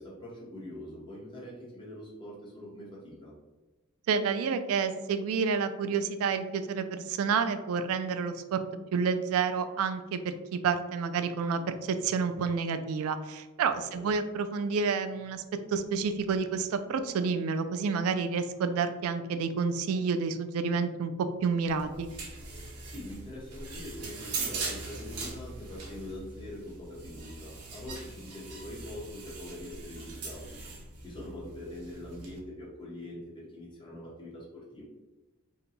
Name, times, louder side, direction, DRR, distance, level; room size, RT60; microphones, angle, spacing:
voice 1, 0.0-3.3 13.9-14.1 22.8-30.6 31.0-34.8, left 1 dB, 20° left, -5 dB, 0.9 m, -43 dB
voice 2, 4.1-8.6 8.9-15.4 15.7-21.1 21.4-22.1, right 5 dB, 70° right, 11 dB, 0.3 m, -29 dB
sound 1, 21.7-32.4, right 3 dB, 90° right, 0.7 m, -41 dB
2.8 x 2.2 x 3.9 m, 1.1 s
head